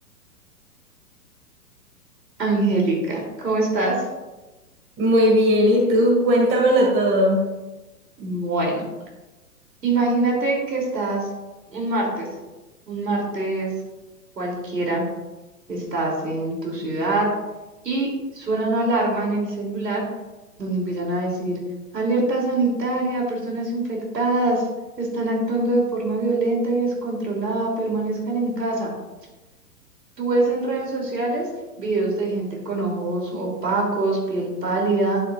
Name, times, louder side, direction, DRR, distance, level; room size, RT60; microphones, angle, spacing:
voice 1, 2.4-4.1 8.2-8.9 9.8-11.3 11.7-12.3 12.9-13.7 14.4-15.0 15.7-17.3 17.8-20.0 20.6-21.6 21.9-24.6 25.0-28.9 30.2-31.5 31.8-35.2, right 2 dB, 85° right, -1 dB, 3.0 m, -24 dB
voice 2, 5.0-7.4, equal, 25° right, 0 dB, 2.1 m, -17 dB
11.0 x 7.6 x 2.4 m, 1.1 s
hypercardioid pair, 120°, 48 cm